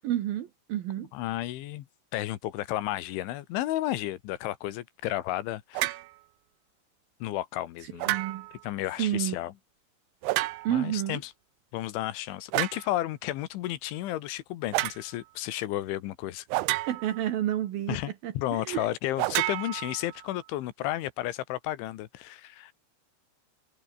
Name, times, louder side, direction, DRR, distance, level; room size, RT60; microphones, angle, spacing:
voice 1, 0.0-1.1 8.1-8.5 9.0-9.4 10.6-11.2 16.9-18.0 18.2-18.9, right 12 dB, 65° right, 2.6 m, -30 dB
voice 2, 1.1-1.9 2.1-6.0 7.2-8.2 8.6-9.5 10.7-11.3 11.7-16.5 17.9-22.7, left 14 dB, 80° left, 3.8 m, -32 dB
sound 1, 5.7-6.1 8.0-8.6 10.2-10.9 12.5-12.9 14.7-15.0 16.5-17.3 19.2-20.3, right 20 dB, 85° right, 3.0 m, -30 dB
omnidirectional pair, 5.4 m